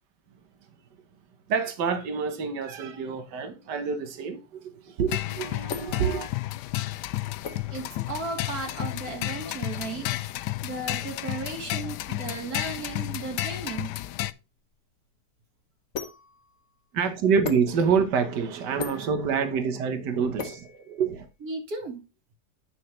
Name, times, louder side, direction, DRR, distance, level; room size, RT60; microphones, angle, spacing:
voice 1, 1.5-6.3 16.9-21.3, right 6 dB, 80° right, 1.7 m, -27 dB
sound 1, 5.1-14.3, left 16 dB, 80° left, 1.2 m, -32 dB
sound 2, 5.7-21.5, left 6 dB, 50° left, 1.2 m, -42 dB
voice 2, 7.5-14.0 21.4-22.0, right 3 dB, 60° right, 2.3 m, -35 dB
8.9 x 6.4 x 3.1 m
omnidirectional pair, 1.8 m